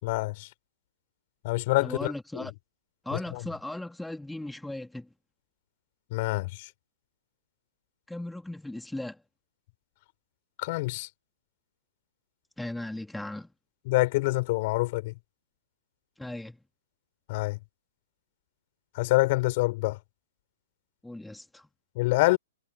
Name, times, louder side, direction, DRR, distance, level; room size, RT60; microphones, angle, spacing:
voice 1, 0.0-0.5 1.4-2.5 6.1-6.7 10.6-11.1 13.9-15.1 17.3-17.6 19.0-20.0 22.0-22.4, left 22 dB, 40° left, 5.6 m, -26 dB
voice 2, 1.8-2.5 3.0-5.1 8.1-9.2 12.6-13.5 16.2-16.6 21.0-21.7, left 1 dB, 5° left, 3.4 m, -37 dB
figure-of-eight pair, 110°, 0 cm